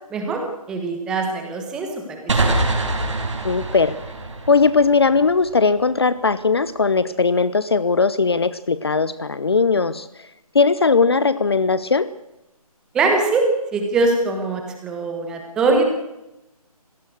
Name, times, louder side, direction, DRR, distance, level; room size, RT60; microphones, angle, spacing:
voice 1, 0.1-0.4 0.7-2.4 12.9-15.8, right 3 dB, 5° right, 3 dB, 1.3 m, -22 dB
sound 1, 2.3-5.8, right 2 dB, 50° right, 5.2 m, -24 dB
voice 2, 3.4-4.0 4.5-10.1 10.5-12.1, left 4 dB, 40° left, 16 dB, 0.7 m, -18 dB
26.0 x 17.5 x 6.5 m, 0.93 s
figure-of-eight pair, 170°, 20 cm